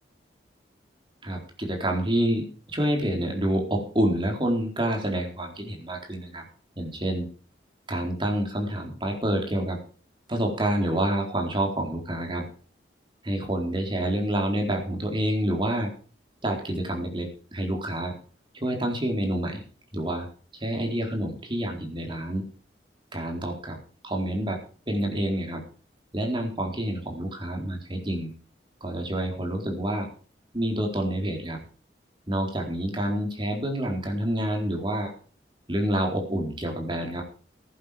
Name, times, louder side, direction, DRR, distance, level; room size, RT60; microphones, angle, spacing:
voice 1, 1.2-6.4 6.8-7.3 7.9-9.8 10.3-12.5 13.2-15.9 16.4-18.1 18.6-19.6 19.9-20.3 20.5-22.4 23.1-23.8 24.0-24.6 24.9-25.6 26.1-28.3 28.8-30.1 30.5-31.6 32.3-35.1 35.7-37.2, right 1 dB, 30° right, 1 dB, 4.0 m, -28 dB
14.5 x 11.0 x 5.1 m, 0.41 s
head